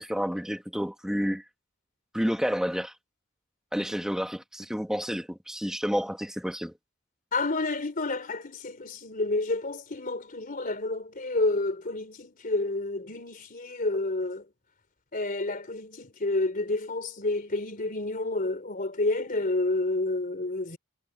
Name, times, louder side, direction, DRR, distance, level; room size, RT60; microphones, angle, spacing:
voice 1, 0.0-1.4 2.1-2.9 3.7-6.7, equal, 5° right, 1.9 m, -30 dB
voice 2, 7.3-14.4 15.1-20.8, left 2 dB, 40° left, 3.2 m, -29 dB
head